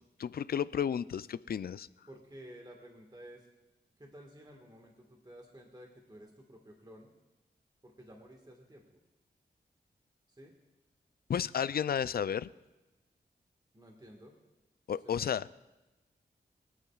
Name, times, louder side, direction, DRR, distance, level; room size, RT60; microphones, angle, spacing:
voice 1, 0.2-1.9 11.3-12.5 14.9-15.4, left 8 dB, 60° left, 17 dB, 0.4 m, -32 dB
voice 2, 2.1-3.5 4.0-7.1 7.8-9.0 10.3-10.5 13.7-14.3 14.9-15.3, equal, 25° right, 1 dB, 1.6 m, -53 dB
23.5 x 8.7 x 2.4 m, 1.1 s
cardioid pair, 55°, 18 cm